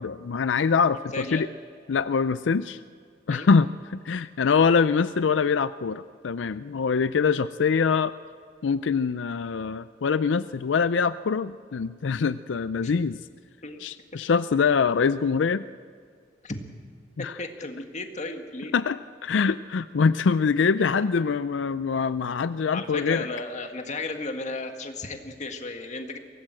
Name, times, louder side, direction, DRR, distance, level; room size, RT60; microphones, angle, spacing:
voice 1, 0.0-1.5 1.9-2.8 3.3-8.1 8.6-13.2 13.8-15.6 17.2-17.4 18.7-23.3, left 5 dB, 90° left, 14 dB, 0.5 m, -24 dB
voice 2, 1.1-1.5 3.3-3.5 12.8-12.9 13.6-13.8 16.4-16.6 17.4-18.7 22.7-26.2, left 2 dB, 40° left, 5 dB, 1.8 m, -34 dB
23.5 x 18.0 x 7.7 m, 2.1 s
head